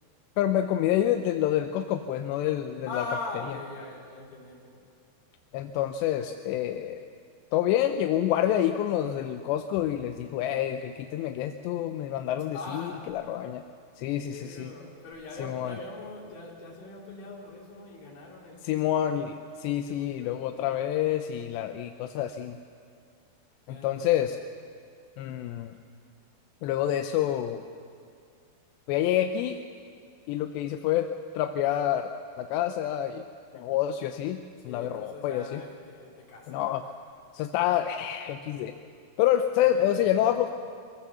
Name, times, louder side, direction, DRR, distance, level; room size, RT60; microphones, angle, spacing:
voice 1, 0.4-3.0 5.5-7.0 7.5-13.6 14.0-14.7 15.4-15.8 18.6-22.6 23.7-24.4 25.2-25.7 26.6-27.6 28.9-29.6 30.3-31.1 31.3-33.3 33.5-35.6 36.5-36.8 37.3-38.7 39.2-40.5, left 11 dB, 85° left, 6 dB, 2.9 m, -27 dB
voice 2, 2.9-4.8 12.5-13.1 14.0-19.2 19.8-20.4 23.7-24.3 34.7-36.6 39.6-40.3, left 3 dB, 60° left, -3 dB, 5.1 m, -41 dB
23.5 x 17.0 x 7.2 m, 2.2 s
omnidirectional pair, 4.9 m